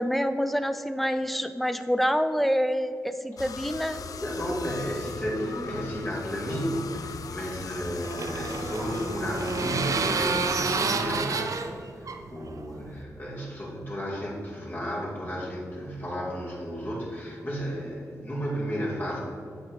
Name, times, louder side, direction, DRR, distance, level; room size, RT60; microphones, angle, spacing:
voice 1, 0.0-4.0, equal, ahead, 10 dB, 0.4 m, -26 dB
sound 1, 3.4-10.6, left 6 dB, 75° left, 0.3 m, -40 dB
voice 2, 3.9-11.6 12.0-19.2, equal, 35° left, -4 dB, 2.0 m, -33 dB
sound 2, 7.5-13.0, right 4 dB, 65° right, 0.5 m, -30 dB
8.6 x 3.3 x 6.1 m, 2.3 s
cardioid pair, 70°, 6 cm